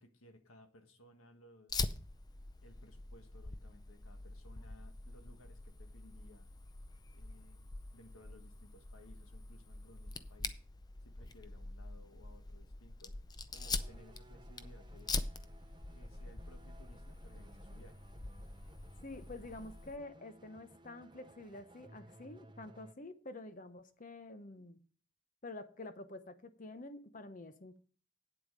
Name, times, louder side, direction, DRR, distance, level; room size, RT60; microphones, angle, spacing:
voice 1, 0.0-1.9 2.6-6.5 7.1-10.6 11.0-13.2 13.5-15.2 15.9-18.1, left 1 dB, 85° left, 1.6 m, -61 dB
Fire, 1.7-20.0, left 3 dB, 20° left, 0.5 m, -44 dB
sound 1, 13.5-22.9, right 1 dB, 20° right, 0.7 m, -59 dB
voice 2, 19.0-24.8 25.4-27.8, left 2 dB, 40° left, 0.9 m, -48 dB
9.1 x 7.9 x 5.1 m
head